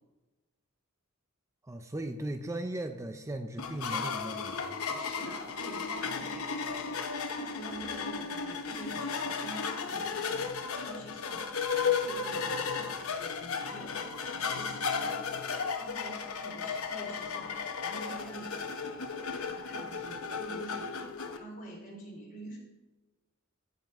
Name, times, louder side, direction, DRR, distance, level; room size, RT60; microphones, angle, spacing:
voice 1, 1.6-5.1, right 1 dB, 15° right, 7 dB, 0.5 m, -38 dB
sound 1, 3.6-21.4, left 5 dB, 85° left, 0.9 m, -34 dB
voice 2, 5.0-22.6, right 1 dB, 40° left, -2 dB, 3.6 m, -47 dB
16.0 x 5.5 x 4.5 m, 1.1 s
head